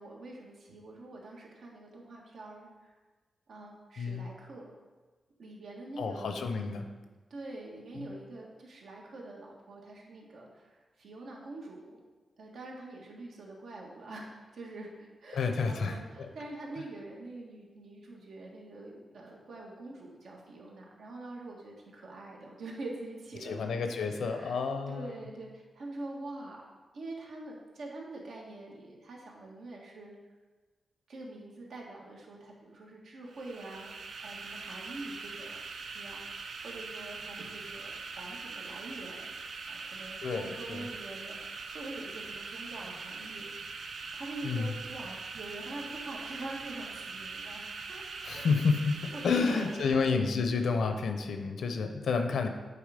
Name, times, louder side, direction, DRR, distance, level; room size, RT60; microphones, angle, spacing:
voice 1, 0.0-2.9 3.5-4.7 5.4-6.3 7.3-12.0 12.4-24.6 24.9-26.7 26.9-30.1 31.1-35.6 35.9-39.3 39.7-43.8 44.1-48.0 48.3-48.6 49.1-50.2, right 2 dB, 80° right, -2 dB, 1.6 m, -45 dB
voice 2, 4.0-4.3 6.0-6.9 8.0-8.1 15.3-16.3 23.4-25.2 40.2-40.9 44.4-44.7 48.2-52.5, left 4 dB, 80° left, 6 dB, 0.8 m, -30 dB
sound 1, 33.3-50.2, right 4 dB, 65° right, 0.5 m, -42 dB
8.5 x 4.6 x 5.1 m, 1.3 s
wide cardioid pair, 135°, 0 cm